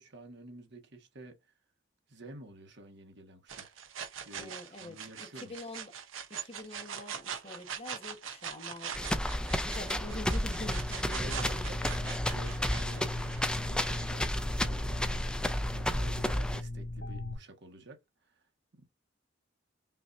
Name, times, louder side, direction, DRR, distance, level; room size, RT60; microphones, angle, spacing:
voice 1, 0.0-1.5 2.1-3.7 4.2-5.5 10.6-18.4, right 2 dB, 60° right, 1.3 m, -51 dB
sound 1, 3.5-14.2, right 7 dB, 85° right, 0.9 m, -43 dB
voice 2, 4.3-5.9 6.3-9.2 9.5-11.6, left 1 dB, 30° left, 1.2 m, -45 dB
sound 2, 8.9-16.6, left 1 dB, 5° left, 0.5 m, -32 dB
sound 3, 10.3-17.4, left 2 dB, 55° left, 1.5 m, -39 dB
5.6 x 2.7 x 2.5 m
head